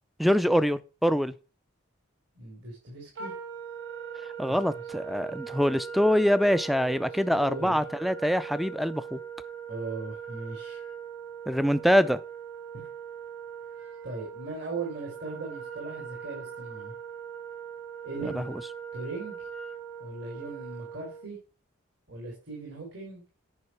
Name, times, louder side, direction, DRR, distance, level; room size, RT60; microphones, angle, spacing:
voice 1, 0.2-1.3 4.4-9.2 11.5-12.2 18.2-18.6, equal, ahead, 0.4 m, -24 dB
voice 2, 2.4-3.4 4.5-4.6 6.9-7.9 9.7-10.8 12.7-12.9 14.0-16.9 18.0-18.5 18.9-19.5 20.0-21.4 22.1-23.2, right 3 dB, 60° right, 3.4 m, -39 dB
Wind instrument woodwind instrument, 3.2-21.3, right 7 dB, 80° right, 2.6 m, -41 dB
9.7 x 5.3 x 5.8 m
head